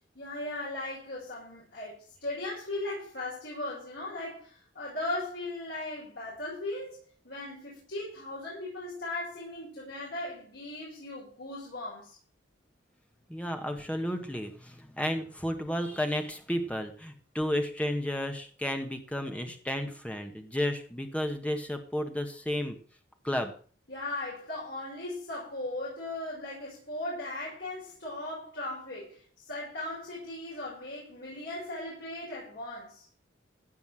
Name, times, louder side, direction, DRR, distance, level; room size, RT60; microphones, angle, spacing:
voice 1, 0.1-12.2 23.9-33.1, left 2 dB, 70° left, 6.6 m, -38 dB
voice 2, 13.3-22.8 23.2-23.5, equal, 5° left, 1.6 m, -32 dB
16.0 x 5.9 x 7.7 m
head